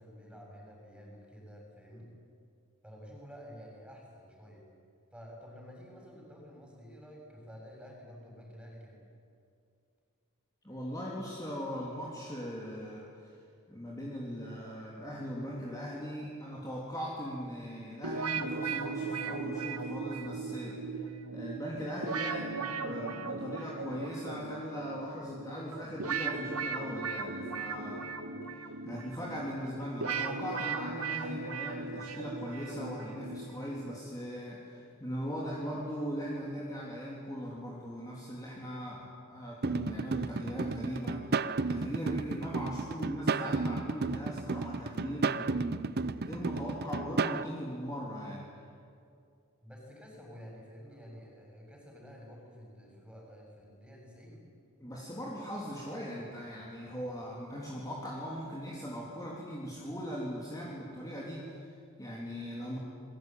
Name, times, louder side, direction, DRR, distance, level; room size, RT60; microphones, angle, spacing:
voice 1, 0.0-2.1 2.8-4.6 5.1-9.0 42.6-43.0 49.6-54.4, equal, 5° right, -1 dB, 7.4 m, -50 dB
voice 2, 10.6-13.3 13.7-28.1 28.6-48.5 54.8-62.8, equal, 15° left, -4 dB, 3.4 m, -39 dB
sound 1, 18.0-34.0, right 4 dB, 80° right, 2.1 m, -37 dB
sound 2, 39.6-47.4, right 3 dB, 45° right, 0.7 m, -33 dB
28.5 x 22.0 x 9.3 m, 2.4 s
head